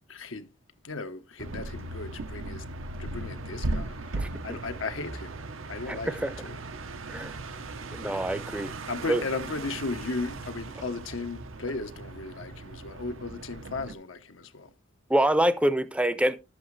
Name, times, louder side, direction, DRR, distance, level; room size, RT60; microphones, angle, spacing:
voice 1, 0.1-0.5 0.8-2.6 3.0-5.3 5.7-6.6 8.1-8.3 8.9-14.7, left 3 dB, 75° left, 1.1 m, -36 dB
sound 1, 1.4-13.9, right 2 dB, 85° right, 0.9 m, -38 dB
voice 2, 4.2-4.6 5.9-6.3 7.1-7.4 7.9-8.7 9.1-9.2 15.1-16.4, right 1 dB, 5° right, 0.6 m, -26 dB
12.0 x 7.7 x 3.2 m
head